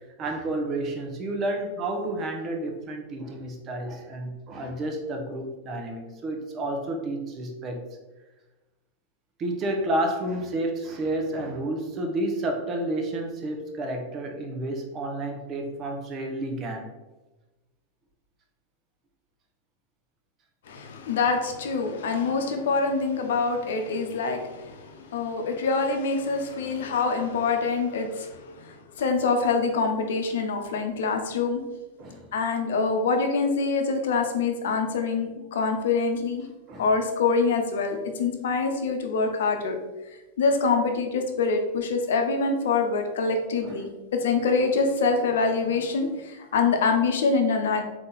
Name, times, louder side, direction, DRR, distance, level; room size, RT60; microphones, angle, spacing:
voice 1, 0.2-7.8 9.4-16.8 32.0-32.3 36.7-36.9 43.6-43.7, right 1 dB, 35° right, 3 dB, 0.9 m, -30 dB
voice 2, 20.7-31.6 32.3-36.5 36.8-39.8 40.4-47.8, left 4 dB, 75° left, 5 dB, 0.7 m, -25 dB
3.8 x 2.9 x 3.9 m, 1.1 s
hypercardioid pair, 100°, 0 cm